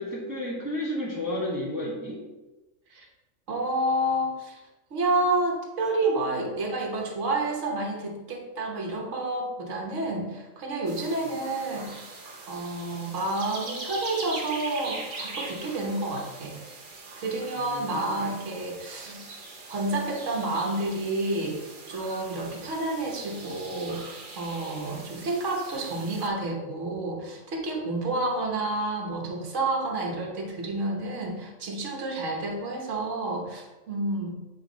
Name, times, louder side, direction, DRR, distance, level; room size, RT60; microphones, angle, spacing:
voice 1, 0.0-2.2 11.2-11.4 17.6-18.2, left 1 dB, 15° right, -5 dB, 1.1 m, -32 dB
voice 2, 3.5-4.6 4.9-12.0 12.5-16.6 17.2-19.2 19.7-34.4, right 2 dB, 65° right, 0 dB, 1.5 m, -29 dB
sound 1, 10.9-26.3, right 3 dB, 45° right, 0.9 m, -42 dB
7.9 x 3.7 x 3.9 m, 1.1 s
omnidirectional pair, 1.4 m